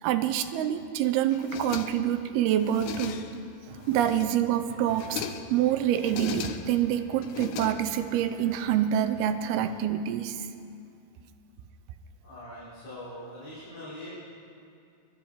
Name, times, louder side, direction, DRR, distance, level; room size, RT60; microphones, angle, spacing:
voice 1, 0.0-3.2 3.9-5.2 5.5-10.5, right 10 dB, 80° right, 10 dB, 2.6 m, -26 dB
sound 1, 1.3-2.2 2.6-3.5 3.8-4.5 4.8-5.6 6.0-6.8 7.2-8.2, left 9 dB, 80° left, 1.9 m, -38 dB
sound 2, 3.6-9.9, right 4 dB, 65° right, 2.0 m, -50 dB
voice 2, 12.2-14.1, left 1 dB, 25° left, -13 dB, 4.9 m, -42 dB
24.0 x 11.5 x 4.9 m, 2.5 s
omnidirectional pair, 4.6 m